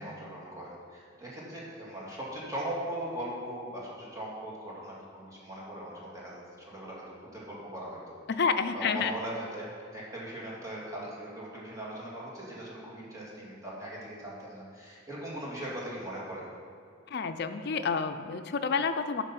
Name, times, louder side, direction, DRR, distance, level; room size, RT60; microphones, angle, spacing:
voice 1, 0.0-8.2 8.7-9.7 9.9-16.4, right 1 dB, 15° right, -6 dB, 2.2 m, -39 dB
voice 2, 8.3-9.2 17.1-19.2, left 5 dB, 55° left, 9 dB, 0.5 m, -29 dB
9.7 x 5.4 x 5.9 m, 2.3 s
head